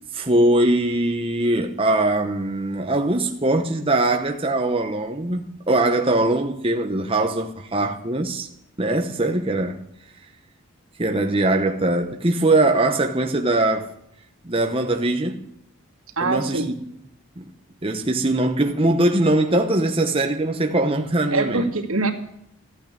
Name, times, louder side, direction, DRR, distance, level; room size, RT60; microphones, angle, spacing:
voice 1, 0.1-8.5 8.8-9.9 11.0-13.9 14.4-15.5 16.2-16.6 17.4-17.5 17.8-21.7, right 2 dB, 25° right, 1.0 m, -21 dB
voice 2, 16.2-16.7 21.3-22.1, right 3 dB, 85° right, 2.4 m, -23 dB
14.5 x 9.1 x 8.8 m
head